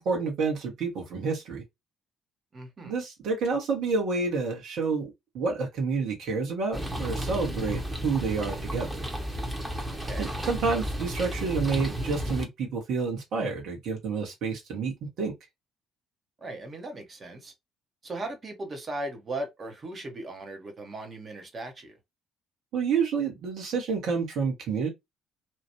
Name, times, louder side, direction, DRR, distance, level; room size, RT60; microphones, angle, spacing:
voice 1, 0.0-1.6 2.8-9.1 10.2-15.3 22.7-24.9, right 4 dB, 55° right, 1.3 m, -29 dB
voice 2, 2.5-2.9 10.0-10.3 16.4-17.5 18.0-22.0, right 2 dB, 35° right, 1.1 m, -37 dB
sound 1, 6.7-12.5, equal, 15° right, 1.1 m, -33 dB
2.9 x 2.5 x 2.9 m
figure-of-eight pair, 50°, 0 cm